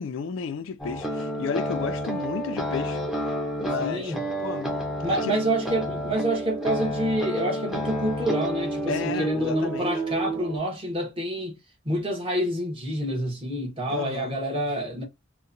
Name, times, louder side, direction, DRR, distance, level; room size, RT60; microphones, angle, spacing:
voice 1, 0.0-3.0 3.6-4.2 4.4-5.4 8.9-9.9 13.9-14.4, left 6 dB, 65° left, 0.3 m, -33 dB
sound 1, 0.8-10.6, right 1 dB, ahead, 0.5 m, -30 dB
voice 2, 3.8-4.2 5.0-11.6 11.8-15.0, right 1 dB, 25° right, 0.9 m, -28 dB
2.8 x 2.1 x 2.5 m
head